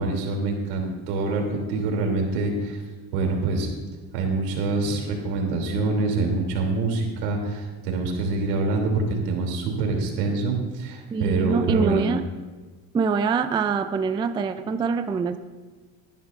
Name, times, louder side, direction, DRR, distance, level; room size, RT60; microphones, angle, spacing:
voice 1, 0.0-2.8 3.1-3.7 4.1-12.1, right 3 dB, 85° right, 1 dB, 3.1 m, -25 dB
voice 2, 11.1-12.2 12.9-15.4, right 5 dB, 10° right, 9 dB, 0.3 m, -24 dB
19.5 x 11.0 x 2.6 m, 1.3 s
supercardioid pair, 110°, 47 cm